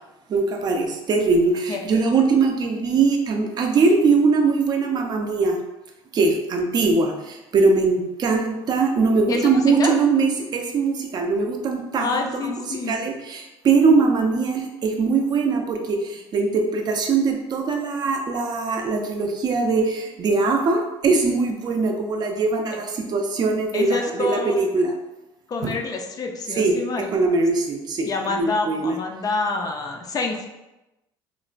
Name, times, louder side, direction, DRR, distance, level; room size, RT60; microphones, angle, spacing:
voice 1, 0.3-5.6 6.1-24.9 25.6-25.7 26.5-29.0, right 4 dB, 40° right, 3 dB, 0.4 m, -21 dB
voice 2, 9.3-10.0 12.0-12.9 23.7-24.6 25.5-27.1 28.0-30.5, left 3 dB, 35° left, 3 dB, 0.4 m, -27 dB
3.0 x 2.1 x 2.4 m, 0.98 s
supercardioid pair, 95°, 11 cm